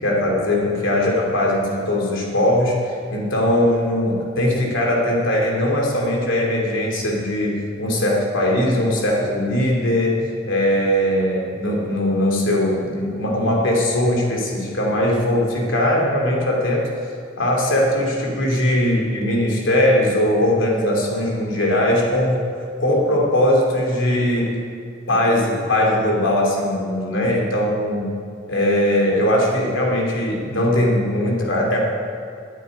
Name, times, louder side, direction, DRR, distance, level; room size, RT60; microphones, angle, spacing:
voice 1, 0.0-10.2 10.4-16.9 17.4-22.4 22.8-24.5 25.1-28.1 28.5-31.8, left 1 dB, 75° left, -1 dB, 3.0 m, -20 dB
9.3 x 9.0 x 9.2 m, 2.3 s
head